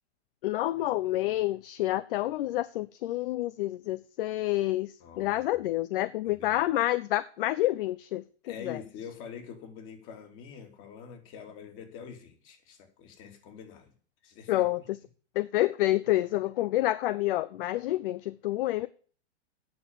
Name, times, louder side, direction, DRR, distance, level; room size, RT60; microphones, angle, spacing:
voice 1, 0.4-8.2 8.6-8.8 14.5-14.8 15.4-18.9, left 15 dB, 55° left, 0.6 m, -28 dB
voice 2, 5.0-5.6 6.2-6.6 8.4-13.9 14.2-14.6, left 7 dB, 35° left, 3.3 m, -45 dB
9.5 x 6.9 x 7.5 m
hypercardioid pair, 135°, 33 cm